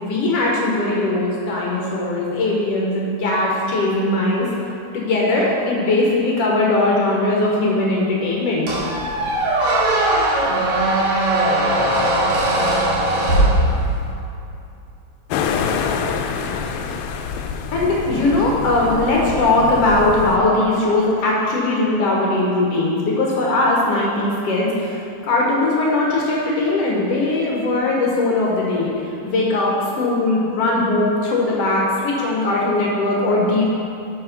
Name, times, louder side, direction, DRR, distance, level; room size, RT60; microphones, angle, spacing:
voice 1, 0.0-4.5 4.9-8.7 17.7-28.9 29.2-33.6, left 2 dB, 70° left, -3 dB, 1.5 m, -19 dB
Squeak, 8.7-14.2, right 1 dB, 75° right, 3.6 m, -19 dB
sound 1, 15.3-20.4, left 6 dB, 85° left, 2.2 m, -26 dB
9.4 x 4.3 x 5.6 m, 2.6 s
omnidirectional pair, 3.9 m